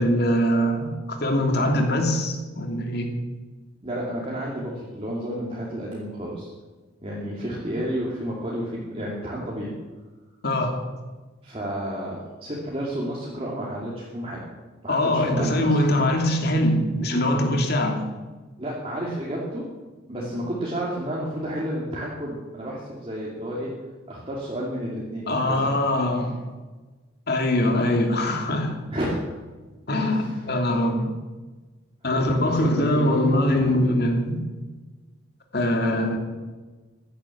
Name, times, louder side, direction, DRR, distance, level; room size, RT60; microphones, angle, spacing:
voice 1, 0.0-3.1 10.4-10.8 14.9-18.0 25.3-26.4 27.3-28.8 29.9-31.1 32.0-34.4 35.5-36.2, left 1 dB, 55° left, 3 dB, 2.8 m, -22 dB
voice 2, 3.8-6.5 7.0-9.7 11.4-14.4 14.8-15.7 18.6-19.7 20.1-23.7 24.1-25.8 28.9-29.2 29.9-30.4 32.1-33.9, equal, 30° right, -5 dB, 2.7 m, -31 dB
15.5 x 11.0 x 7.3 m, 1.3 s
head